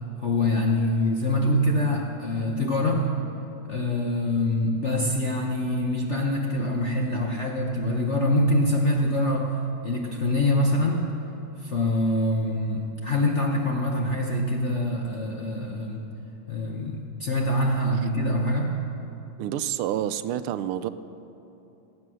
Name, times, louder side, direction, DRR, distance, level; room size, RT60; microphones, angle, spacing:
voice 1, 0.2-3.1 3.6-11.1 11.6-16.1 16.5-18.8, left 1 dB, 55° left, 0 dB, 0.8 m, -25 dB
voice 2, 19.4-20.9, right 11 dB, 85° right, 13 dB, 1.5 m, -28 dB
18.0 x 8.5 x 6.3 m, 2.9 s
omnidirectional pair, 2.3 m